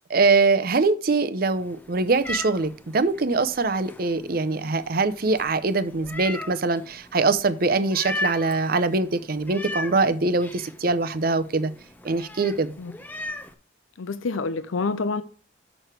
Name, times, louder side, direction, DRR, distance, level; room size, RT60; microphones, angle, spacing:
voice 1, 0.1-11.7 12.0-12.7, right 3 dB, 50° right, 0.7 m, -23 dB
Meow, 1.5-13.5, left 1 dB, 10° left, 0.6 m, -38 dB
voice 2, 14.0-15.2, left 4 dB, 85° left, 0.5 m, -27 dB
6.7 x 6.3 x 4.6 m
head